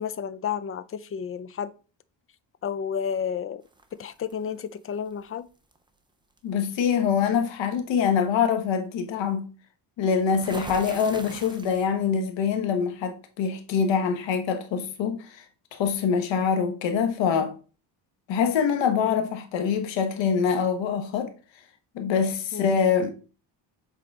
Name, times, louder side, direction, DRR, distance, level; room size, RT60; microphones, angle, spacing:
voice 1, 0.0-1.7 2.6-3.6 3.9-5.5 19.0-19.2 22.5-22.7, left 7 dB, 30° left, 0.4 m, -31 dB
sound 1, 3.7-4.3 5.7-5.9 6.4-6.6 10.3-12.0, right 2 dB, 10° right, 0.6 m, -41 dB
voice 2, 6.4-9.5 10.0-15.4 15.7-17.5 18.3-21.3 21.9-23.1, left 6 dB, 80° left, 1.2 m, -24 dB
7.4 x 3.8 x 3.6 m
cardioid pair, 140°, 44 cm